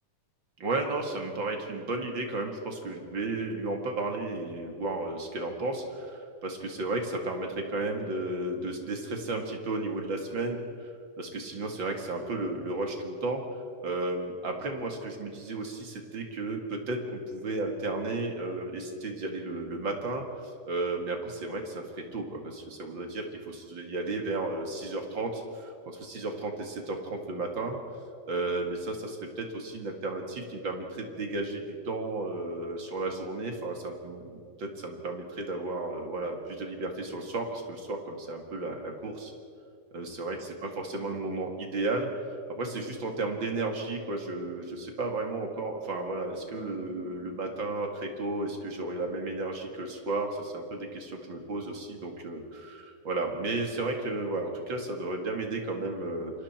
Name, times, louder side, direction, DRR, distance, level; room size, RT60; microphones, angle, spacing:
voice 1, 0.6-10.9 11.2-13.4 13.8-20.3 20.7-27.8 28.3-34.3 34.6-39.3 39.9-40.4 40.9-42.2 42.5-56.3, right 2 dB, 40° right, 2 dB, 2.6 m, -33 dB
Keyboard (musical), 46.5-48.5, right 8 dB, 15° left, 7.6 m, -54 dB
28.0 x 25.0 x 4.4 m, 2.3 s
omnidirectional pair, 3.7 m